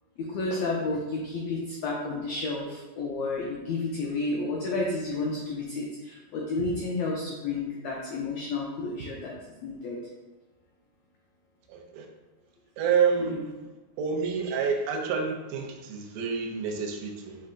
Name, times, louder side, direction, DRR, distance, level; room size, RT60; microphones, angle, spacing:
voice 1, 0.2-9.3 9.6-10.0 13.2-13.4, left 3 dB, 85° left, -2 dB, 1.4 m, -31 dB
voice 2, 11.7-12.1 12.8-13.4 14.0-17.4, right 6 dB, 85° right, 2 dB, 2.1 m, -28 dB
5.1 x 3.7 x 2.5 m, 1.2 s
omnidirectional pair, 3.6 m